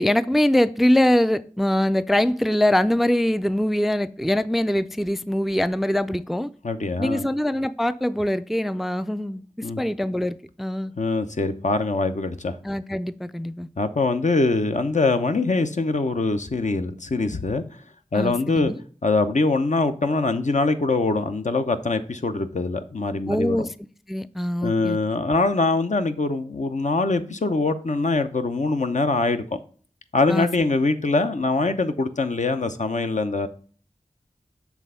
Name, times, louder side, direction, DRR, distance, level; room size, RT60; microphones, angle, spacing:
voice 1, 0.0-6.5 7.0-9.4 9.8-10.9 12.6-13.7 18.1-18.8 23.3-23.7 24.1-25.0 30.3-30.5, left 1 dB, ahead, 0.3 m, -23 dB
voice 2, 6.6-7.3 9.6-9.8 11.0-12.5 13.8-17.6 18.1-18.7 19.0-23.7 24.6-29.4 30.1-33.5, left 3 dB, 65° left, 0.8 m, -23 dB
7.2 x 3.4 x 5.5 m
wide cardioid pair, 50°, 14 cm